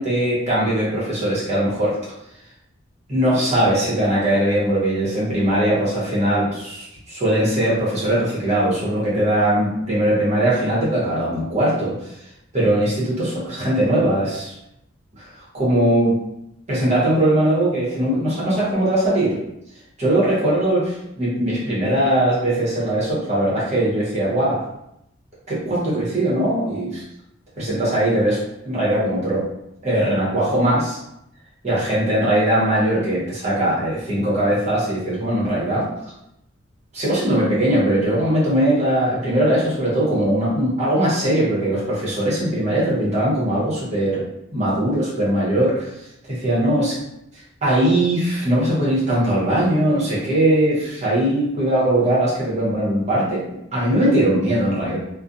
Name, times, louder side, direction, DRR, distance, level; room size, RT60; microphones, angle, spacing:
voice 1, 0.0-1.9 3.1-11.9 12.5-14.5 15.5-16.2 16.7-19.4 20.0-24.6 25.5-27.0 27.6-28.4 28.6-29.4 29.8-31.0 31.6-35.9 36.9-44.2 44.5-45.9 46.3-46.9 47.6-53.4 53.7-55.0, right 1 dB, 35° right, -7 dB, 1.0 m, -20 dB
2.4 x 2.1 x 2.6 m, 0.81 s
head